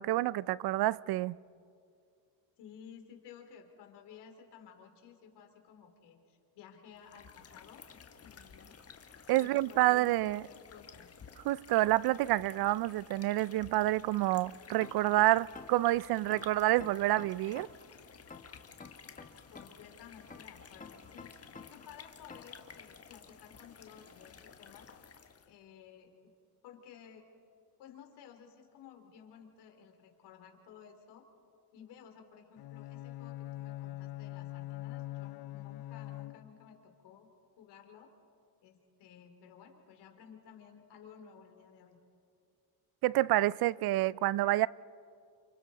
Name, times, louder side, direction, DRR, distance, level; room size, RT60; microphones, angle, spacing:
voice 1, 0.0-1.3 9.3-10.4 11.4-17.7 43.0-44.7, right 16 dB, 65° right, 0.5 m, -28 dB
voice 2, 2.6-8.7 9.4-11.1 19.5-24.9 25.4-26.3 26.6-27.2 27.8-31.3 31.7-37.3 37.6-38.1 38.6-42.0, left 8 dB, 80° left, 3.4 m, -55 dB
sound 1, 6.9-25.6, left 6 dB, 35° left, 1.5 m, -54 dB
sound 2, 14.8-15.9 16.3-17.9 18.3-19.9 20.3-21.9 22.3-22.6, left 5 dB, 20° left, 1.7 m, -49 dB
Bowed string instrument, 32.6-36.8, left 16 dB, 65° left, 0.7 m, -43 dB
29.5 x 27.5 x 4.1 m
cardioid pair, 90°, 40 cm